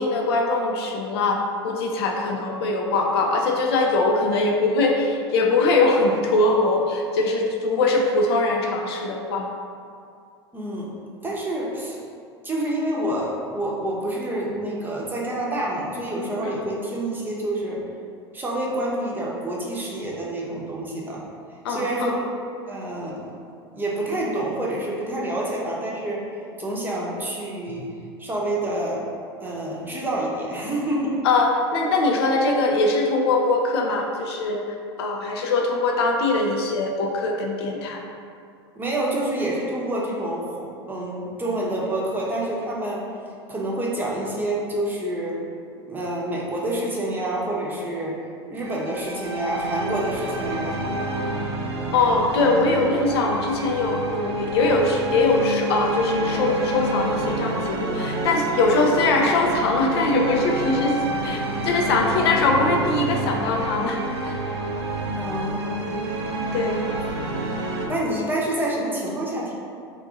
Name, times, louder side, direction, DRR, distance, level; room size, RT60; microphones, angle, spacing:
voice 1, 0.0-1.4 1.6-9.5 16.4-16.6 21.6-22.2 31.2-34.6 35.0-38.0 51.9-64.4 66.5-66.9, left 2 dB, 70° left, 1 dB, 0.4 m, -22 dB
voice 2, 10.5-10.9 11.2-12.0 12.4-17.8 18.3-21.2 21.7-22.3 22.7-23.2 23.7-26.3 26.6-27.9 28.2-29.0 29.4-31.2 38.8-43.0 43.5-45.4 45.9-48.2 48.5-51.1 65.2-65.8 67.9-69.5, right 1 dB, 15° right, -4 dB, 0.7 m, -27 dB
sound 1, 48.6-67.9, right 2 dB, 75° right, 0.4 m, -28 dB
2.6 x 2.4 x 3.8 m, 2.4 s
hypercardioid pair, 85°, 14 cm